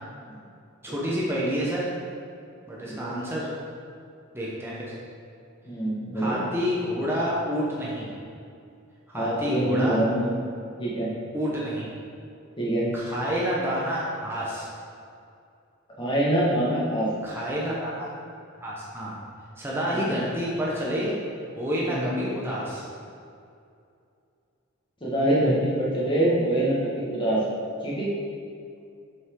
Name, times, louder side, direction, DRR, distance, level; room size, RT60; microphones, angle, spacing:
voice 1, 0.8-1.9 2.7-3.5 4.3-4.9 6.1-8.1 9.1-10.0 11.3-11.9 12.9-14.7 17.2-18.1 18.6-19.1 19.6-21.1 21.6-22.8, equal, 10° right, -6 dB, 0.9 m, -29 dB
voice 2, 5.6-6.4 9.1-10.3 10.8-11.1 12.6-12.9 16.0-17.1 19.9-20.2 21.8-22.1 25.0-27.4 27.8-28.1, right 1 dB, 25° left, -7 dB, 1.6 m, -25 dB
6.2 x 5.7 x 3.8 m, 2.5 s
head